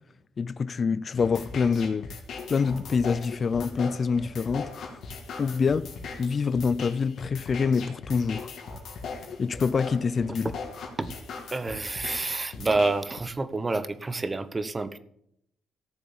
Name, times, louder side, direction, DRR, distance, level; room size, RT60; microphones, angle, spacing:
voice 1, 0.4-2.1 2.5-5.0 5.4-5.9 6.2-8.5 9.4-10.5, left 5 dB, 40° left, 0.5 m, -26 dB
sound 1, 1.2-13.2, left 4 dB, 65° left, 2.8 m, -39 dB
voice 2, 11.5-15.0, right 3 dB, 25° right, 0.9 m, -28 dB
14.0 x 7.0 x 7.1 m
cardioid pair, 90°, 0 cm